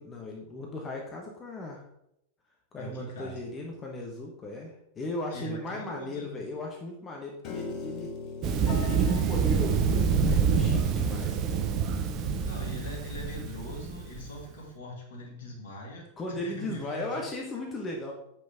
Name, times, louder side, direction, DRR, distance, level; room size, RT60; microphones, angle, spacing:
voice 1, 0.0-1.8 2.7-8.1 8.9-11.4 16.2-18.1, left 2 dB, 20° left, 0 dB, 1.1 m, -37 dB
voice 2, 2.8-3.4 5.3-6.3 12.5-17.2, left 1 dB, 60° left, -1 dB, 2.2 m, -42 dB
Piano, 7.4-13.7, left 4 dB, 40° left, 1.2 m, -43 dB
Thunder, 8.4-14.3, right 6 dB, 35° right, 0.7 m, -27 dB
7.7 x 5.8 x 3.6 m, 0.78 s
figure-of-eight pair, 90°, 0 cm